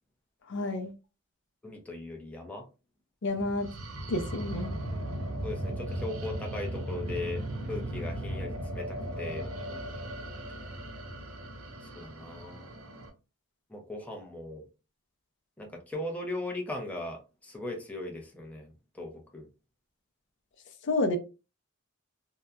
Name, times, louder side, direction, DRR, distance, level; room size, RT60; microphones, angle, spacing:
voice 1, 0.5-0.9 3.2-3.7 4.1-4.8 20.8-21.2, left 2 dB, 60° left, 0.5 m, -29 dB
voice 2, 1.6-2.7 5.4-9.5 11.8-12.7 13.7-14.7 15.6-19.5, left 2 dB, 5° left, 0.5 m, -39 dB
sound 1, 3.4-13.1, right 1 dB, 70° right, 0.6 m, -37 dB
2.7 x 2.1 x 2.3 m
head